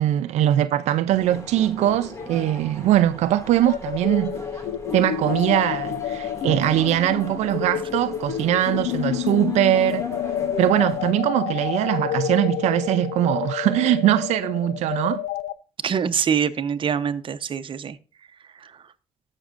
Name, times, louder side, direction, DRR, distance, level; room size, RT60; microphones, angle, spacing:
voice 1, 0.0-4.4 4.9-10.0 10.6-15.2, right 13 dB, 90° right, 0.4 m, -21 dB
sound 1, 1.1-11.1, left 2 dB, 25° left, 2.2 m, -39 dB
sound 2, 3.6-15.5, left 11 dB, 90° left, 0.5 m, -29 dB
voice 2, 15.8-18.0 18.6-18.7, right 7 dB, 50° right, 0.8 m, -24 dB
14.0 x 6.2 x 2.5 m
cardioid pair, 95°, 11 cm